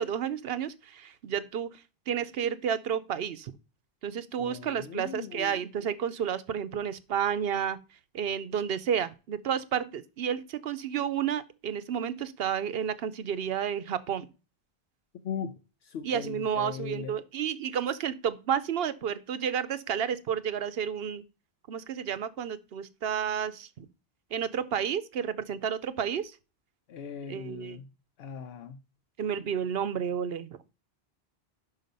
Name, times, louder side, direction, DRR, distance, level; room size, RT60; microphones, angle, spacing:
voice 1, 0.0-3.5 4.0-7.8 8.1-14.3 16.0-21.2 21.7-23.9 24.3-26.4 27.3-27.8 29.2-30.5, right 8 dB, 70° right, 0.9 m, -31 dB
voice 2, 4.4-5.5 15.2-15.5 15.8-17.1 26.9-27.9 28.2-28.8, left 7 dB, 70° left, 0.9 m, -39 dB
5.7 x 5.6 x 5.3 m
omnidirectional pair, 1.1 m